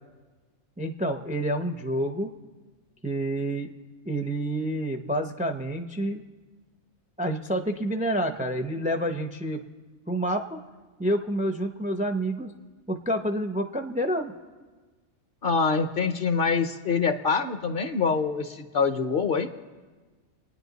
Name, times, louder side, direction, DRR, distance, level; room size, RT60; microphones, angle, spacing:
voice 1, 0.8-2.3 3.0-3.7 4.1-6.2 7.2-9.6 10.1-10.6 11.0-12.5 12.9-14.3, right 1 dB, 10° right, 5 dB, 0.3 m, -28 dB
voice 2, 15.4-19.5, left 5 dB, 50° left, 8 dB, 0.8 m, -25 dB
27.5 x 9.8 x 4.0 m, 1.3 s
omnidirectional pair, 1.4 m